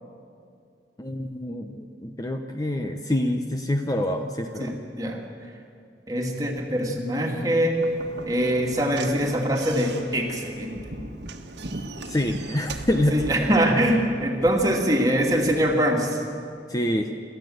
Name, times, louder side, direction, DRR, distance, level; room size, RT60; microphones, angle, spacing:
voice 1, 1.0-4.8 12.1-13.5 16.7-17.1, left 1 dB, 20° left, 5 dB, 0.8 m, -26 dB
voice 2, 4.6-5.2 6.1-7.8 8.3-10.8 13.1-16.2, equal, 20° right, 0 dB, 2.4 m, -23 dB
Slam / Knock, 7.7-13.6, right 3 dB, 75° right, 1.4 m, -40 dB
sound 1, 10.7-15.8, right 1 dB, 60° right, 1.3 m, -39 dB
27.5 x 14.0 x 7.9 m, 2.4 s
head